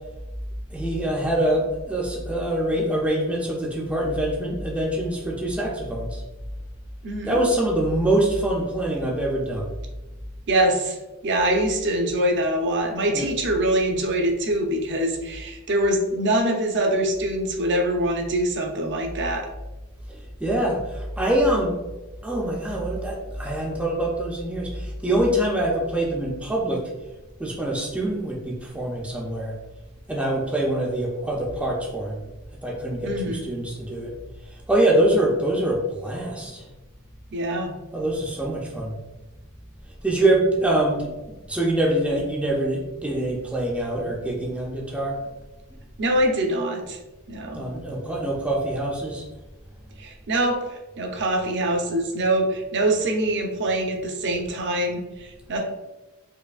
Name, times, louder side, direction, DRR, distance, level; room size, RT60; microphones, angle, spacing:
voice 1, 0.7-6.2 7.3-9.7 13.1-13.3 20.1-21.8 22.2-26.9 27.4-29.6 30.1-32.3 32.6-34.1 34.5-36.7 37.9-39.0 40.0-45.2 47.5-49.3, right 1 dB, 5° right, -2 dB, 0.4 m, -24 dB
voice 2, 7.0-7.4 10.5-11.0 11.2-19.5 33.0-33.5 37.3-37.8 46.0-47.0 47.3-47.7 50.0-55.6, right 1 dB, 55° right, 2 dB, 0.6 m, -24 dB
4.7 x 2.5 x 2.4 m, 1.1 s
head